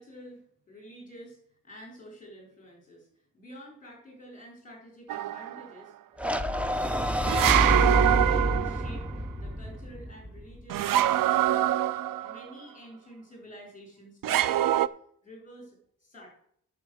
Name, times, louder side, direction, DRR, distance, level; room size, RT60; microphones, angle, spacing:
voice 1, 0.0-1.4 1.6-3.1 3.3-5.9 6.2-11.9 12.2-14.8 15.2-16.4, equal, 25° left, 0 dB, 4.2 m, -49 dB
sound 1, 5.1-5.6 7.3-9.0 10.7-12.4 14.2-14.9, right 13 dB, 85° right, 0.5 m, -24 dB
sound 2, 6.2-10.6, equal, 5° right, 0.5 m, -28 dB
8.8 x 7.1 x 6.3 m, 0.66 s
wide cardioid pair, 160°, 32 cm